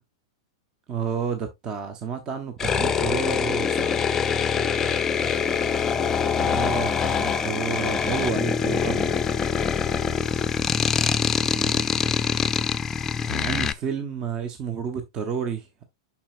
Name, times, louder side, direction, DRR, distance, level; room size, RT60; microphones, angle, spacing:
voice 1, 0.9-4.0 6.4-9.2 11.5-11.8 13.2-15.9, right 6 dB, 30° right, 0.9 m, -31 dB
sound 1, 2.6-13.7, left 6 dB, 20° left, 0.5 m, -24 dB
voice 2, 5.1-6.0 8.5-12.8, right 4 dB, 75° right, 3.1 m, -50 dB
7.2 x 5.8 x 2.4 m
figure-of-eight pair, 100°, 2 cm